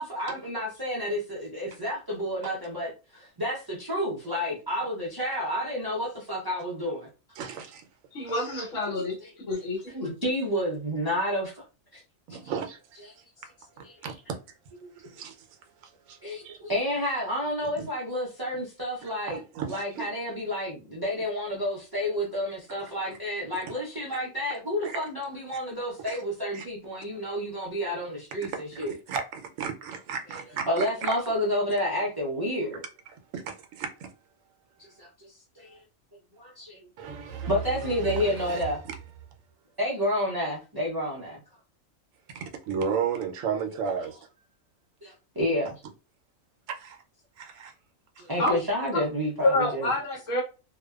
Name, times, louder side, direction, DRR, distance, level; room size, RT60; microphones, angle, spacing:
voice 1, 0.0-7.1 8.8-8.9 9.2-9.3 9.9-11.6 11.9-12.0 12.3-12.4 13.8-13.9 14.8-14.9 16.2-19.4 19.7-28.9 30.7-32.8 35.0-35.8 36.4-36.8 37.5-38.8 39.8-41.4 45.0-45.8 48.2-49.9, equal, 30° right, 0.4 m, -30 dB
voice 2, 7.4-7.9 12.3-13.5 13.8-14.4 14.9-16.7 17.6-17.9 19.3-20.1 23.7-23.8 24.8-25.0 26.1-26.2 26.5-26.6 28.4-30.9 33.3-34.1 35.7-35.8 37.0-38.9 42.3-44.2 46.7-47.0 47.4-47.7, right 7 dB, 75° right, 0.9 m, -35 dB
voice 3, 8.1-9.2 9.5-10.1 48.4-48.6 48.9-49.0 49.4-50.4, left 1 dB, 70° left, 1.2 m, -27 dB
2.6 x 2.2 x 2.3 m
omnidirectional pair, 1.4 m